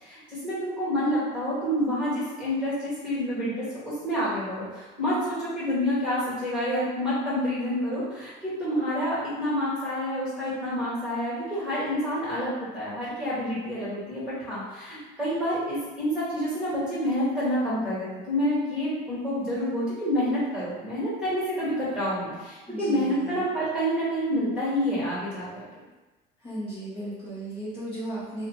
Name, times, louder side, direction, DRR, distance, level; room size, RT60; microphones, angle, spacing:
voice 1, 0.0-25.5, equal, 5° right, -10 dB, 1.4 m, -28 dB
voice 2, 22.7-23.4 26.4-28.5, right 1 dB, 25° left, -12 dB, 1.0 m, -35 dB
2.8 x 2.1 x 3.1 m, 1.2 s
cardioid pair, 125°, 19 cm